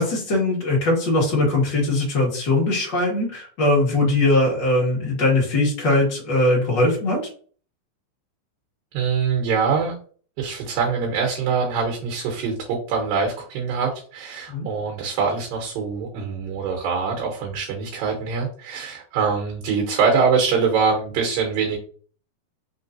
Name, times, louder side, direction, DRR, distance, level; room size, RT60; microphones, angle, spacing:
voice 1, 0.0-7.2 14.5-14.7, left 2 dB, 45° left, -3 dB, 1.5 m, -20 dB
voice 2, 8.9-9.9 10.4-21.8, right 5 dB, 75° right, 1 dB, 2.7 m, -23 dB
5.4 x 3.6 x 2.6 m, 0.43 s
omnidirectional pair, 4.2 m